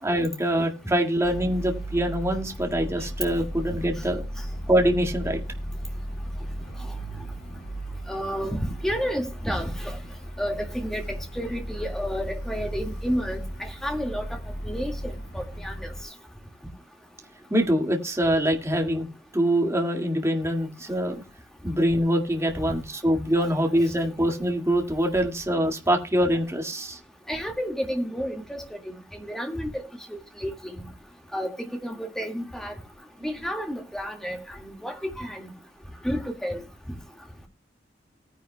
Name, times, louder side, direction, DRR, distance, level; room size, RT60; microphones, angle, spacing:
voice 1, 0.0-4.2 4.7-5.4 17.5-19.1 19.3-21.2 21.6-27.0, equal, 15° right, 2.0 m, -24 dB
sound 1, 1.2-16.0, right 1 dB, 55° left, 2.6 m, -35 dB
voice 2, 8.1-10.0 10.4-14.3 14.6-15.9 27.3-28.8 29.3-29.8 30.1-30.5 31.3-31.5 31.8-32.7 33.2-35.5 36.0-36.6, equal, 5° left, 1.9 m, -31 dB
18.5 x 10.0 x 2.2 m
head